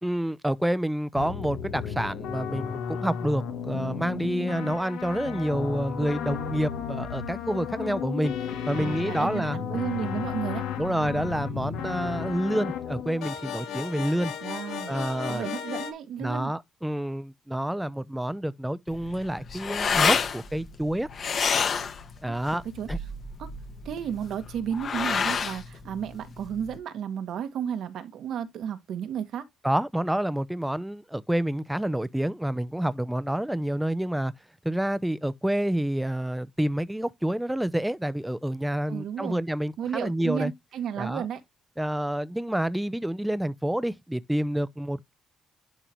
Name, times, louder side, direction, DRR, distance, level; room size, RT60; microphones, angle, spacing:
voice 1, 0.0-8.3 8.7-9.6 10.8-14.3 14.9-15.5 16.2-21.1 22.2-22.6 22.9-23.0 29.6-34.3 34.6-40.5 41.0-41.3 41.8-45.1, right 1 dB, 5° right, 0.5 m, -28 dB
sound 1, 1.2-15.9, left 8 dB, 90° left, 1.3 m, -34 dB
voice 2, 8.7-10.6 14.4-15.0 15.3-16.5 22.3-22.4 22.7-22.9 23.4-23.5 23.8-29.4 38.9-39.4 39.8-41.4, right 8 dB, 75° right, 1.5 m, -33 dB
sound 2, 18.9-26.8, left 6 dB, 45° left, 1.1 m, -29 dB
11.0 x 3.8 x 3.0 m
cardioid pair, 115°, 0 cm